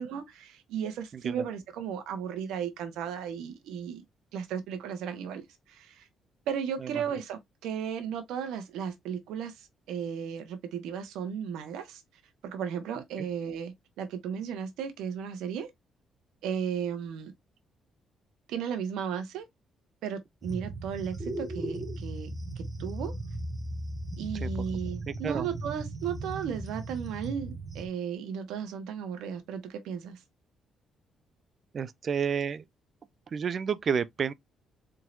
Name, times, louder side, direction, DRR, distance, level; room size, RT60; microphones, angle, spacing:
voice 1, 0.0-4.0 4.3-5.4 5.7-6.0 6.5-12.0 12.4-15.7 16.4-17.3 18.5-19.4 20.0-22.3 22.6-23.1 24.2-30.2, right 8 dB, 90° right, 1.0 m, -35 dB
sound 1, 20.4-27.9, right 1 dB, 15° right, 1.6 m, -37 dB
voice 2, 25.1-25.5 31.7-32.6 33.3-34.3, right 7 dB, 50° right, 0.4 m, -30 dB
4.4 x 3.7 x 2.5 m
cardioid pair, 90°, 0 cm